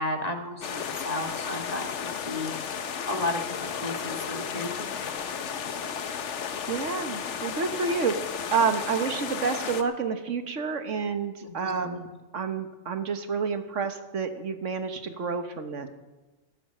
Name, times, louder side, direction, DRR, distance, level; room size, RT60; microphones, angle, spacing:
voice 1, 0.0-2.5 3.1-4.9 11.5-12.1, left 2 dB, 30° left, 4 dB, 1.5 m, -33 dB
sound 1, 0.6-9.8, left 7 dB, 65° left, 1.2 m, -34 dB
voice 2, 6.7-12.0 12.3-15.9, right 5 dB, 75° right, 8 dB, 1.5 m, -29 dB
13.0 x 11.0 x 7.7 m, 1.1 s
omnidirectional pair, 1.3 m